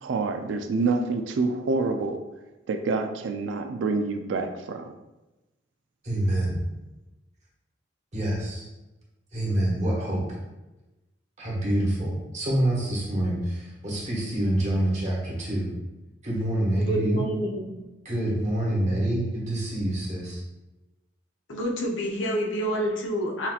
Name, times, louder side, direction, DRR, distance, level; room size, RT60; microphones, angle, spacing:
voice 1, 0.0-2.2 2.7-4.9, right 3 dB, 75° right, 6 dB, 0.4 m, -27 dB
voice 2, 6.0-6.6 8.1-8.7 9.3-10.2 11.4-15.7 16.2-17.2 18.0-20.4, right 1 dB, 40° right, -5 dB, 1.4 m, -26 dB
voice 3, 16.8-17.7 21.5-23.5, right 1 dB, 90° left, 0 dB, 0.8 m, -28 dB
5.8 x 2.8 x 2.4 m, 1.0 s
head